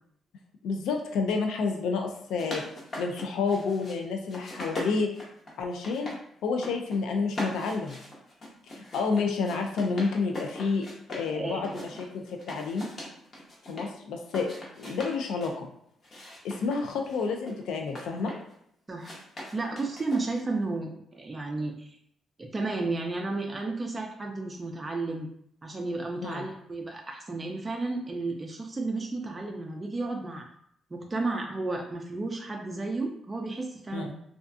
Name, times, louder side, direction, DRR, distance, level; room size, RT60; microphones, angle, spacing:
voice 1, 0.6-2.6 2.9-5.1 5.6-8.0 8.7-12.9 13.7-14.5 14.8-15.7 16.4-18.3 26.2-26.5 33.9-34.1, left 4 dB, 85° left, 3 dB, 0.3 m, -30 dB
sound 1, 2.1-4.0 4.3-6.2 6.5-7.0 7.3-11.3 11.6-13.9 14.2-15.5 16.0-18.5 19.0-20.5, left 1 dB, 40° left, 0.8 m, -41 dB
voice 2, 11.3-12.0 18.9-19.2 19.5-22.0 22.4-25.3 25.6-30.5 30.9-34.1, right 3 dB, 25° right, 1 dB, 0.3 m, -33 dB
2.5 x 2.3 x 2.4 m, 0.70 s
cardioid pair, 90°, 0 cm